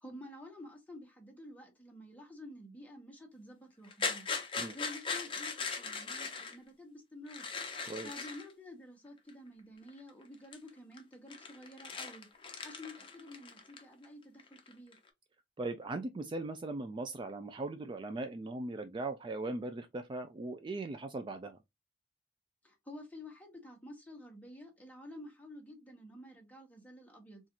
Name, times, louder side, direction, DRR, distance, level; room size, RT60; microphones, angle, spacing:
voice 1, 0.0-4.3 4.7-7.5 8.0-12.3 12.6-15.0 22.6-27.4, left 1 dB, 10° left, 1.0 m, -50 dB
sound 1, 3.8-6.6 7.3-8.5 9.3-9.4 9.9-10.2 10.5-10.7 10.9-14.1 14.4-15.1, left 5 dB, 30° left, 0.7 m, -39 dB
voice 2, 15.6-21.6, right 2 dB, 25° right, 0.3 m, -39 dB
4.0 x 2.5 x 2.8 m
head